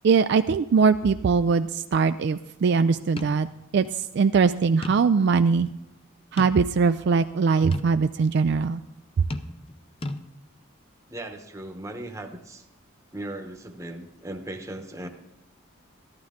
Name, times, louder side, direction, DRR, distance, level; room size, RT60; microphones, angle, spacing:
voice 1, 0.0-3.5 3.7-5.7 6.3-8.8, right 5 dB, 55° right, 10 dB, 0.3 m, -21 dB
sound 1, 3.2-3.4 3.8-3.9 4.8-5.2 5.6-5.7 6.4-6.9 7.7-7.9 9.3-9.8 10.0-10.2, left 2 dB, 25° left, 0.5 m, -35 dB
voice 2, 11.1-12.7 13.1-15.1, right 1 dB, 15° right, 5 dB, 0.9 m, -37 dB
14.0 x 11.5 x 3.7 m, 0.95 s
head